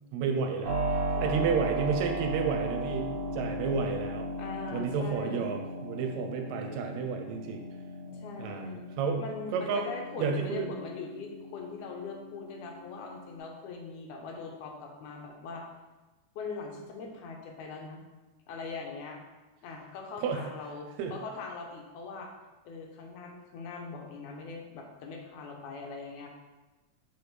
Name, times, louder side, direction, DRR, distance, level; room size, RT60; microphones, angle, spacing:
voice 1, 0.1-3.1 3.3-4.3 4.7-7.6 8.4-8.7 9.0-9.2 9.5-9.8 10.2-10.7 20.2-20.4 21.0-21.1, right 5 dB, 80° right, 4 dB, 1.8 m, -31 dB
Keyboard (musical), 0.6-13.4, right 1 dB, 50° right, 1.4 m, -36 dB
voice 2, 1.1-1.7 4.4-5.5 8.0-8.9 9.2-15.7 16.4-18.0 18.5-19.2 19.6-22.3 22.6-26.3, left 4 dB, 90° left, 2 dB, 2.3 m, -41 dB
6.4 x 4.8 x 3.2 m, 1.1 s
omnidirectional pair, 3.4 m